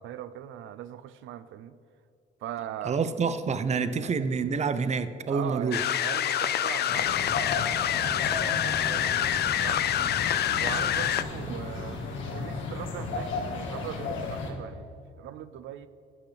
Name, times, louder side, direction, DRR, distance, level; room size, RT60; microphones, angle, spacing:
voice 1, 0.0-1.8 2.4-3.0 3.7-4.1 5.3-9.8 10.6-15.9, right 11 dB, 80° right, 12 dB, 0.4 m, -40 dB
voice 2, 2.9-5.8, right 5 dB, 35° right, 12 dB, 0.6 m, -27 dB
sound 1, 5.7-11.2, left 11 dB, 55° left, 0.4 m, -27 dB
sound 2, 6.9-14.5, left 3 dB, 75° left, 1.6 m, -34 dB
18.0 x 6.0 x 3.3 m, 2.7 s
cardioid pair, 90°, 20 cm